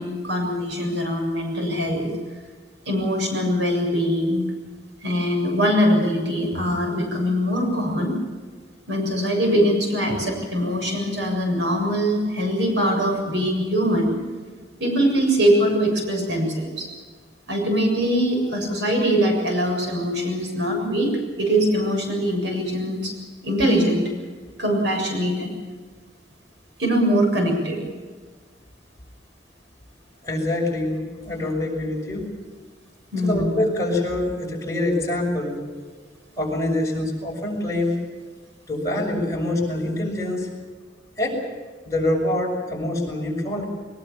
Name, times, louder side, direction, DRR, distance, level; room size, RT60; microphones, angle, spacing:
voice 1, 0.0-2.1 2.9-4.4 5.0-8.2 8.9-14.2 14.8-16.9 17.5-21.1 21.4-23.1 23.4-24.1 24.6-25.5 26.8-27.8 33.1-33.5, equal, 80° right, 2 dB, 7.2 m, -22 dB
voice 2, 30.2-32.3 33.2-35.6 36.3-37.9 38.7-40.5 41.2-41.4 41.8-43.7, left 1 dB, 20° left, -2 dB, 6.2 m, -25 dB
22.0 x 21.0 x 7.2 m, 1.4 s
head